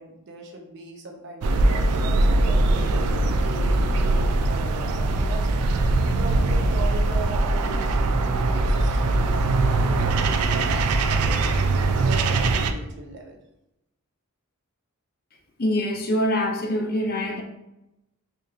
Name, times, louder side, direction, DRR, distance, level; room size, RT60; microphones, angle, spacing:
voice 1, 0.0-3.0 3.4-5.5 5.9-11.7 12.0-13.4, right 2 dB, 50° right, 2 dB, 0.7 m, -39 dB
sound 1, 1.4-12.7, right 2 dB, 90° right, 0.4 m, -21 dB
voice 2, 15.6-17.4, left 1 dB, 40° left, 3 dB, 0.5 m, -24 dB
5.1 x 2.8 x 2.4 m, 0.87 s
head